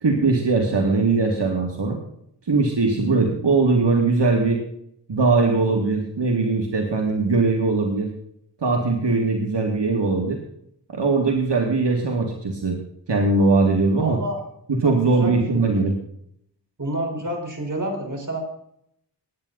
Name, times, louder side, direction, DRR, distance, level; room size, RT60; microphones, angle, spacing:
voice 1, 0.0-2.0 2.5-4.6 5.1-8.1 8.6-10.4 10.9-12.8 13.1-14.2 14.7-15.9, right 3 dB, 80° right, 1 dB, 2.2 m, -20 dB
voice 2, 13.9-14.4 14.8-15.8 16.8-18.4, right 1 dB, 45° right, 2 dB, 4.6 m, -29 dB
19.5 x 9.5 x 4.0 m, 0.71 s
wide cardioid pair, 60°, 42 cm